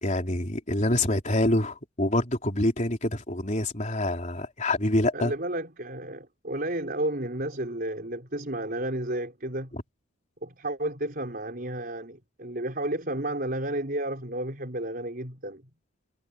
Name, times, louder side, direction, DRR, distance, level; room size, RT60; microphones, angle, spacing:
voice 1, 0.0-5.3, left 1 dB, 35° left, 3.9 m, -26 dB
voice 2, 5.1-9.8 10.4-15.6, right 1 dB, 45° right, 4.7 m, -32 dB
head